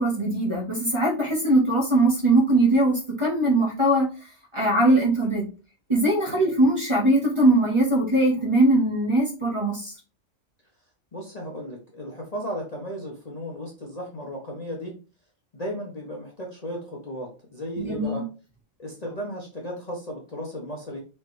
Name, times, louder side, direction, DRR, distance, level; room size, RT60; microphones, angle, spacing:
voice 1, 0.0-4.1 4.5-5.4 5.9-9.9 17.8-18.2, right 1 dB, 25° right, -2 dB, 1.1 m, -21 dB
voice 2, 11.1-14.9 15.5-18.2 18.8-21.0, equal, 35° left, -1 dB, 0.8 m, -35 dB
4.5 x 3.1 x 3.1 m, 0.34 s
omnidirectional pair, 1.4 m